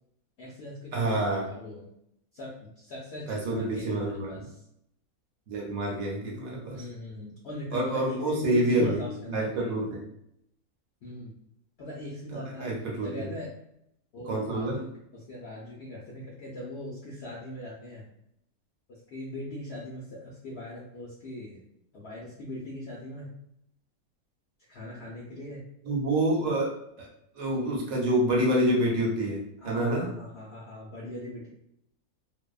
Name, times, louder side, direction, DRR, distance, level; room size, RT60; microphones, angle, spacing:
voice 1, 0.4-1.9 2.3-4.6 6.7-9.6 11.0-11.3 11.8-12.7 13.0-13.5 14.1-18.1 18.9-21.6 21.9-23.3 24.7-25.6 29.6-31.5, left 1 dB, 70° left, -5 dB, 0.6 m, -40 dB
voice 2, 0.9-1.5 3.3-4.4 5.5-6.8 7.7-10.0 12.3-13.3 14.3-14.8 25.8-26.7 27.0-27.1 27.3-30.1, right 1 dB, 70° right, -2 dB, 1.1 m, -27 dB
2.6 x 2.1 x 2.3 m, 0.75 s
omnidirectional pair, 1.6 m